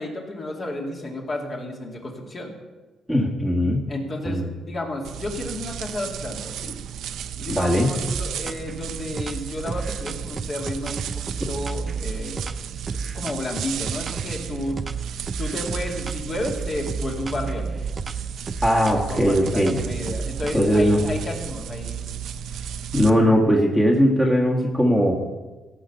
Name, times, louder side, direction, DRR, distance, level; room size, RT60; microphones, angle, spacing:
voice 1, 0.0-2.5 3.9-6.8 7.4-12.5 12.9-14.8 15.4-17.7 18.9-22.0, left 1 dB, 40° left, 0 dB, 2.5 m, -32 dB
voice 2, 3.1-3.9 4.2-4.4 7.5-7.9 18.6-19.8 20.5-21.0 22.9-25.2, equal, 5° left, -2 dB, 1.6 m, -19 dB
sound 1, 5.0-23.1, right 8 dB, 75° right, 0.7 m, -34 dB
sound 2, 8.1-8.8 9.2-14.4 14.8-16.2 16.5-20.9, right 4 dB, 30° right, 0.4 m, -32 dB
16.0 x 5.8 x 6.8 m, 1.2 s
cardioid pair, 110°, 0 cm